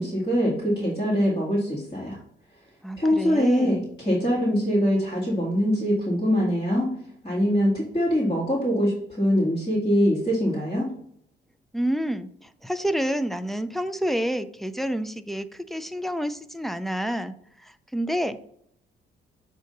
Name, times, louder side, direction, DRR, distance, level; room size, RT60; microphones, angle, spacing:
voice 1, 0.0-2.2 3.0-6.9 7.2-10.9, equal, 20° left, -8 dB, 2.1 m, -23 dB
voice 2, 2.8-3.8 11.7-17.3 17.6-18.4, equal, ahead, 10 dB, 0.4 m, -29 dB
7.6 x 2.7 x 5.2 m, 0.68 s
cardioid pair, 90°, 20 cm